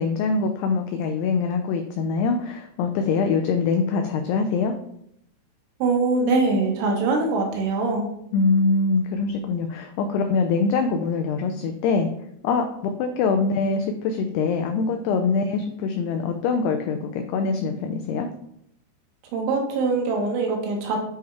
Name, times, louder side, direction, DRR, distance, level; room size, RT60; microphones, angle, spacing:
voice 1, 0.0-4.7 8.3-12.1 12.4-12.7 13.0-18.3, left 4 dB, 90° left, 5 dB, 2.3 m, -23 dB
voice 2, 5.8-8.1 19.3-21.0, right 3 dB, 85° right, 1 dB, 3.6 m, -23 dB
9.4 x 3.5 x 3.2 m, 0.74 s
omnidirectional pair, 5.2 m